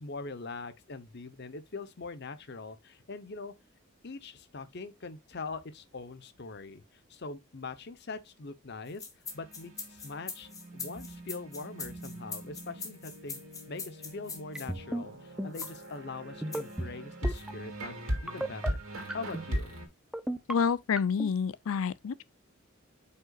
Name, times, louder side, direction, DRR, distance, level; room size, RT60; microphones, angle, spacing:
voice 1, 0.0-3.5 4.0-6.8 7.1-9.1 9.3-13.4 13.7-18.0 18.2-18.8 19.1-19.7, left 3 dB, 50° left, 0.8 m, -42 dB
sound 1, 8.9-14.7 15.5-15.9 16.5-16.8 17.3-17.4, left 5 dB, 15° left, 1.2 m, -42 dB
sound 2, 9.3-19.9, equal, 85° right, 2.3 m, -40 dB
sound 3, 14.5-15.0 15.4-15.6 16.4-16.9 17.2-17.5 18.3-18.7 19.1-19.5 20.1-20.5 21.0-21.3, right 1 dB, 5° right, 0.5 m, -33 dB
voice 2, 20.5-22.2, left 6 dB, 75° left, 0.5 m, -28 dB
7.9 x 5.5 x 2.3 m
head